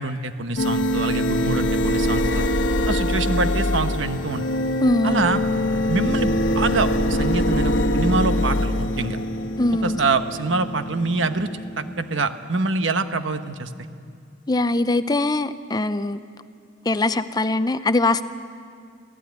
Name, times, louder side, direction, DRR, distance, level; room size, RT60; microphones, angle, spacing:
voice 1, 0.0-2.5 2.9-4.5 5.0-5.4 5.9-9.2 9.8-13.7, right 3 dB, 75° right, 9 dB, 1.1 m, -25 dB
sound 1, 0.6-12.2, left 1 dB, 70° left, 1.1 m, -23 dB
voice 2, 4.8-5.3 9.6-10.0 14.5-16.2 16.9-18.2, left 2 dB, 20° left, 12 dB, 0.6 m, -21 dB
25.5 x 16.0 x 9.4 m, 2.3 s
head